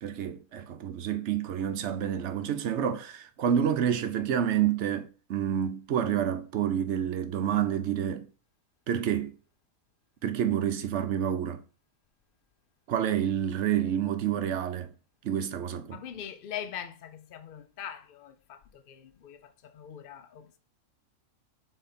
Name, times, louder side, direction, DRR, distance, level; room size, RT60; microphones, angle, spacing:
voice 1, 0.0-8.3 8.9-9.3 10.2-11.6 12.9-14.9 15.2-16.0, right 9 dB, 60° right, 0.9 m, -28 dB
voice 2, 15.9-20.6, left 9 dB, 70° left, 0.5 m, -42 dB
6.6 x 3.6 x 4.2 m
omnidirectional pair, 1.6 m